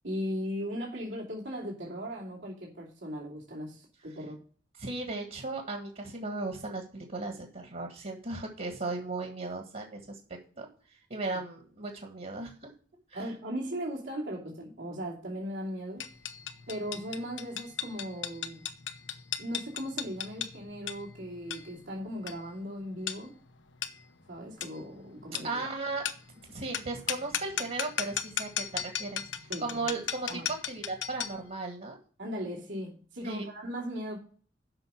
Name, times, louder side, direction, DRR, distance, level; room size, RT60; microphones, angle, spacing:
voice 1, 0.0-4.4 13.1-16.1 16.7-18.6 19.4-23.3 24.3-25.6 29.5-29.8 30.3-30.5 32.2-34.2, equal, 80° right, -3 dB, 2.7 m, -38 dB
voice 2, 4.8-10.2 10.6-10.7 11.1-12.7 13.1-13.2 25.4-26.0 26.5-32.0 33.2-33.5, right 3 dB, 50° right, 3 dB, 1.7 m, -36 dB
sound 1, 16.0-31.5, left 9 dB, 90° left, 0.9 m, -37 dB
7.7 x 5.7 x 7.3 m, 0.42 s
head